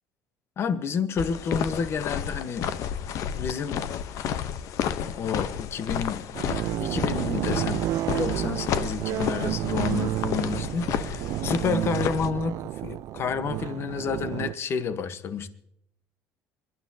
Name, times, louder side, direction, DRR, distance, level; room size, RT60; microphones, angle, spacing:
voice 1, 0.6-2.6 3.3-3.8 5.0-6.2 6.5-12.5 12.8-15.5, left 6 dB, 45° left, 12 dB, 1.1 m, -30 dB
sound 1, 1.2-12.3, left 9 dB, 65° left, 0.8 m, -31 dB
sound 2, 6.3-14.5, right 13 dB, 60° right, 0.4 m, -30 dB
23.5 x 12.0 x 2.8 m, 0.74 s
cardioid pair, 110°, 6 cm